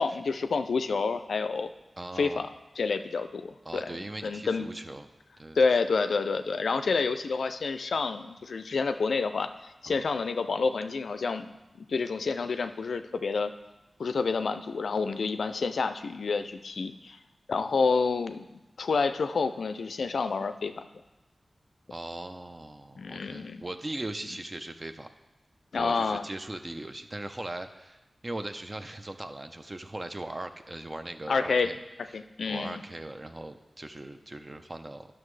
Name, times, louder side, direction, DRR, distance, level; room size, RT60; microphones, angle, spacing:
voice 1, 0.0-1.7 2.2-2.5 2.8-3.9 4.2-4.7 5.6-13.5 14.0-17.2 17.5-20.9 23.0-23.6 25.7-26.3 31.3-31.7 32.0-32.8, left 4 dB, 85° left, 9 dB, 0.4 m, -29 dB
voice 2, 2.0-2.5 3.7-5.1 5.4-5.6 9.9-10.0 21.9-25.1 25.7-31.8 32.1-35.1, right 1 dB, 35° right, 7 dB, 0.6 m, -39 dB
10.5 x 6.0 x 3.2 m, 1.0 s
cardioid pair, 40°, 0 cm